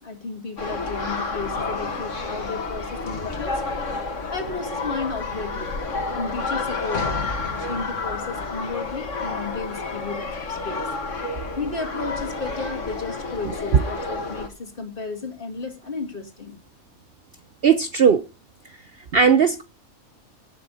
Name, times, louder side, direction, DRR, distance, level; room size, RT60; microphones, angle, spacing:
voice 1, 0.0-3.6 4.3-5.8 6.1-10.9 11.6-16.6, left 4 dB, 40° left, 2.6 m, -33 dB
sound 1, 0.6-14.5, left 3 dB, 60° left, 2.2 m, -30 dB
voice 2, 13.4-13.8 17.6-18.2 19.1-19.6, right 6 dB, 50° right, 0.8 m, -17 dB
18.5 x 6.8 x 4.1 m
omnidirectional pair, 1.5 m